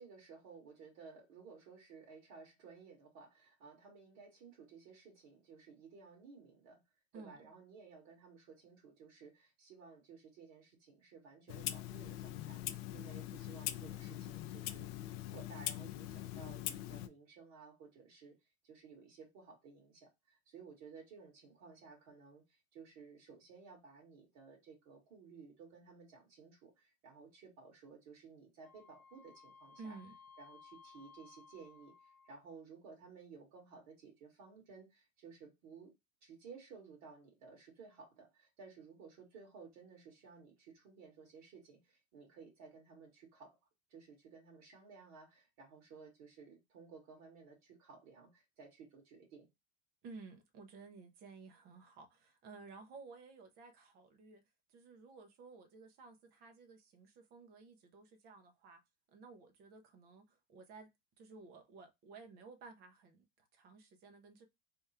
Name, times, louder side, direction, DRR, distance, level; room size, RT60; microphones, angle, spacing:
voice 1, 0.0-6.8 7.1-18.4 18.6-30.0 30.4-31.9 32.3-35.9 36.2-43.6 43.9-49.5, right 5 dB, 45° right, 2.0 m, -56 dB
Clock, 11.5-17.1, left 13 dB, 50° left, 0.5 m, -42 dB
Wind instrument woodwind instrument, 28.6-32.5, left 5 dB, 20° left, 0.7 m, -60 dB
voice 2, 29.8-30.1 50.0-54.4 54.7-58.8 59.1-60.9 61.2-64.5, right 4 dB, 25° right, 0.5 m, -55 dB
3.5 x 2.3 x 4.2 m
supercardioid pair, 165°, 40 cm